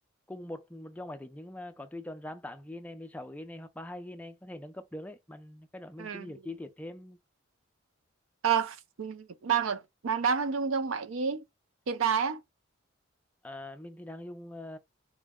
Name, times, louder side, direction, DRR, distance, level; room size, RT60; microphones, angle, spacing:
voice 1, 0.3-7.2 13.4-14.8, left 1 dB, 5° left, 0.3 m, -43 dB
voice 2, 6.0-6.3 8.4-11.4 11.9-12.4, right 7 dB, 75° right, 0.5 m, -29 dB
4.3 x 2.0 x 3.5 m
head